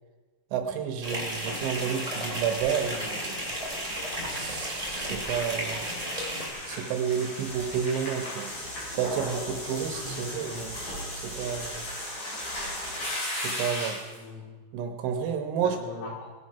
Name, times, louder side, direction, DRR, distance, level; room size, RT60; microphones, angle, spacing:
voice 1, 0.5-3.4 4.3-5.9 6.7-8.5 8.9-11.9 13.3-14.0 14.7-15.8, right 7 dB, 75° right, 5 dB, 3.3 m, -31 dB
sound 1, 1.0-6.5, equal, 10° right, 1.7 m, -33 dB
sound 2, 1.2-14.2, left 1 dB, 45° left, 6.9 m, -37 dB
voice 2, 4.2-4.5 10.0-10.6 14.0-14.5 15.6-16.3, left 3 dB, 85° left, -3 dB, 5.7 m, -41 dB
20.0 x 8.0 x 5.7 m, 1.3 s
omnidirectional pair, 5.9 m